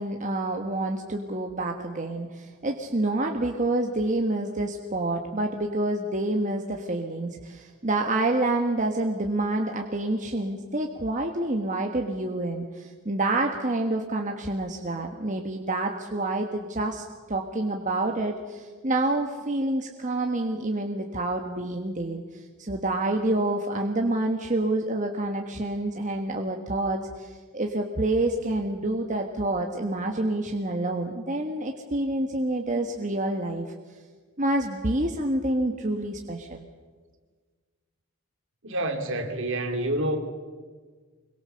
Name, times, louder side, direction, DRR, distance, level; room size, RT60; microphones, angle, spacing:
voice 1, 0.0-33.6 34.4-36.6, right 2 dB, 35° right, 3 dB, 1.4 m, -28 dB
voice 2, 38.6-40.2, right 1 dB, 55° right, 5 dB, 2.9 m, -28 dB
25.0 x 22.5 x 6.8 m, 1.5 s
head